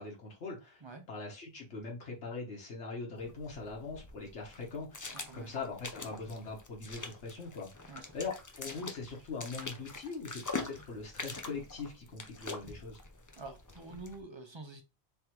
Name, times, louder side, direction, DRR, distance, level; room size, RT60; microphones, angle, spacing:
voice 1, 0.0-0.8 1.1-13.0, left 4 dB, 75° left, 1.3 m, -42 dB
sound 1, 3.2-14.2, left 3 dB, 30° left, 0.4 m, -44 dB
voice 2, 5.1-5.5 7.9-8.1 13.4-14.8, right 3 dB, 40° right, 0.4 m, -47 dB
3.5 x 3.4 x 2.9 m
omnidirectional pair, 1.2 m